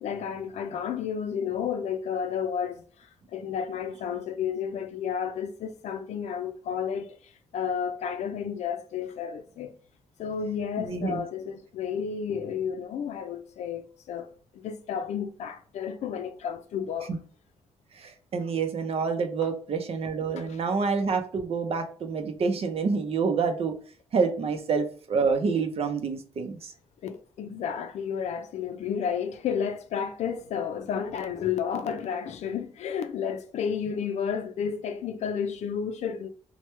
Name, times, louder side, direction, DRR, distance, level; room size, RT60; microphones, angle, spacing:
voice 1, 0.0-2.8 3.3-7.1 7.5-9.7 10.2-14.3 14.5-17.1 20.4-20.5 27.0-36.3, left 7 dB, 85° left, 0.4 m, -31 dB
voice 2, 10.8-11.2 18.0-23.7 24.1-26.7, right 5 dB, 60° right, 0.6 m, -27 dB
3.0 x 2.2 x 3.1 m
cardioid pair, 90°, 11 cm